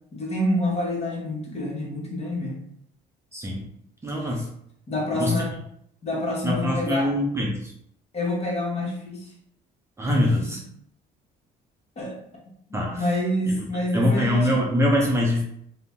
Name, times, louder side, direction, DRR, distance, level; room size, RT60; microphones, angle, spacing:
voice 1, 0.1-2.6 4.2-4.4 4.9-5.6 6.0-7.1 8.1-9.3 10.1-10.6 12.0-12.2 12.7-14.7, left 1 dB, 40° left, -2 dB, 1.0 m, -27 dB
voice 2, 3.3-3.7 4.0-4.5 5.2-5.3 6.4-7.6 10.0-10.6 12.7-13.0 13.9-15.4, left 1 dB, 15° right, -2 dB, 0.5 m, -23 dB
2.5 x 2.1 x 3.5 m, 0.70 s
cardioid pair, 110°, 17 cm